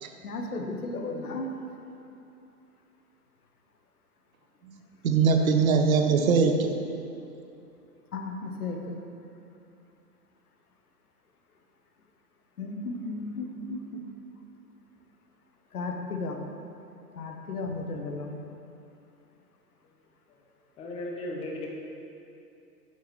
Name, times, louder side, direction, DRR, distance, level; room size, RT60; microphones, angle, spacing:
voice 1, 0.2-1.6 6.2-6.3 8.1-9.0 12.6-14.0 15.7-16.4 17.1-18.4, left 3 dB, 70° left, 3 dB, 1.0 m, -34 dB
voice 2, 4.6-6.7, right 5 dB, 60° right, 5 dB, 0.8 m, -22 dB
voice 3, 20.8-21.7, left 1 dB, 15° left, -1 dB, 0.6 m, -36 dB
8.4 x 5.6 x 3.1 m, 2.7 s
figure-of-eight pair, 110°, 46 cm